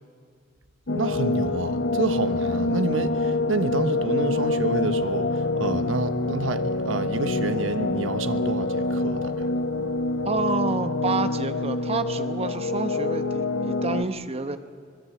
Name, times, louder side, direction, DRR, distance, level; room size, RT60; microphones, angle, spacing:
sound 1, 0.9-14.0, left 2 dB, 70° left, 0.9 m, -26 dB
voice 1, 0.9-9.5, right 2 dB, 90° right, 1.2 m, -29 dB
voice 2, 10.2-14.6, right 3 dB, 30° right, 1.0 m, -29 dB
23.5 x 20.5 x 8.5 m
head